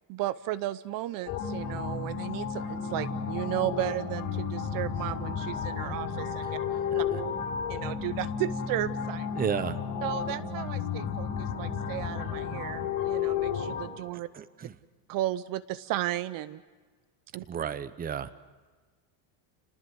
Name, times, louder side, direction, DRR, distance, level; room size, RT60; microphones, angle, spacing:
voice 1, 0.1-6.6 7.7-9.3 10.0-14.3 15.1-16.6 17.3-17.4, right 15 dB, 50° right, 16 dB, 0.8 m, -34 dB
sound 1, 1.3-13.9, left 7 dB, 45° left, 6.4 m, -32 dB
voice 2, 9.4-9.8 14.3-14.7 17.5-18.3, right 8 dB, 20° right, 15 dB, 0.9 m, -32 dB
30.0 x 19.5 x 7.8 m, 1.4 s
supercardioid pair, 130°, 43 cm